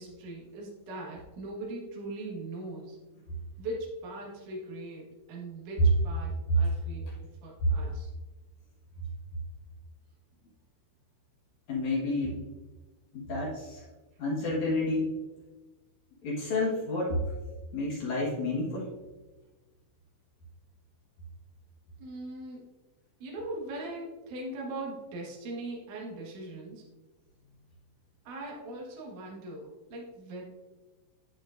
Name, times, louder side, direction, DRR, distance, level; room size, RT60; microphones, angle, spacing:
voice 1, 0.0-3.0 3.6-8.1 22.0-22.7 23.2-26.8 28.2-30.4, right 2 dB, 70° right, -2 dB, 1.9 m, -40 dB
voice 2, 11.7-12.4 13.1-13.8 14.2-15.2 16.2-17.2 17.7-18.9, left 2 dB, 70° left, -6 dB, 1.8 m, -30 dB
8.8 x 7.9 x 2.5 m, 1.2 s
omnidirectional pair, 6.0 m